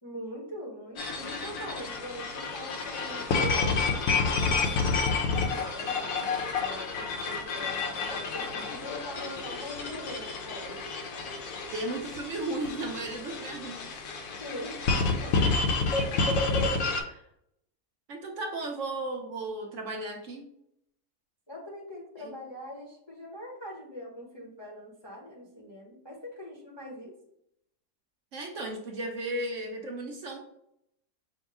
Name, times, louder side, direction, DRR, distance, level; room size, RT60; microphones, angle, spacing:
voice 1, 0.0-5.0 5.5-10.8 14.4-14.8 15.2-15.8 21.5-27.1, equal, 25° left, -3 dB, 0.6 m, -42 dB
sound 1, 1.0-17.0, left 4 dB, 65° left, 1.1 m, -30 dB
voice 2, 11.7-14.1 16.9-17.2 18.1-20.5 22.2-22.3 28.3-30.4, right 2 dB, 60° right, 0 dB, 1.1 m, -35 dB
5.3 x 2.1 x 4.8 m, 0.74 s
omnidirectional pair, 1.7 m